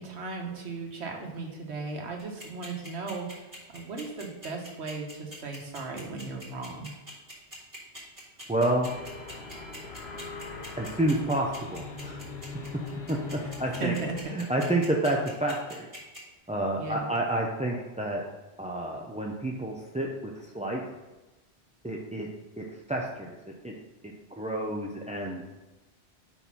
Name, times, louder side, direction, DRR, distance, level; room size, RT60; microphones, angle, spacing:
voice 1, 0.0-6.9 13.4-13.5 13.8-14.1 16.8-17.1, right 4 dB, 85° right, 1 dB, 1.4 m, -36 dB
sound 1, 2.2-16.2, equal, 40° right, 2.4 m, -44 dB
voice 2, 8.5-8.9 10.8-12.2 13.1-14.0 14.3-15.9 16.5-18.2 18.6-20.8 21.8-22.3 22.6-23.4 23.6-23.7 24.4-25.4, right 1 dB, 10° right, -1 dB, 0.4 m, -29 dB
sound 2, 8.8-14.2, left 4 dB, 70° left, 1.0 m, -41 dB
5.3 x 4.2 x 5.9 m, 1.1 s
omnidirectional pair, 1.1 m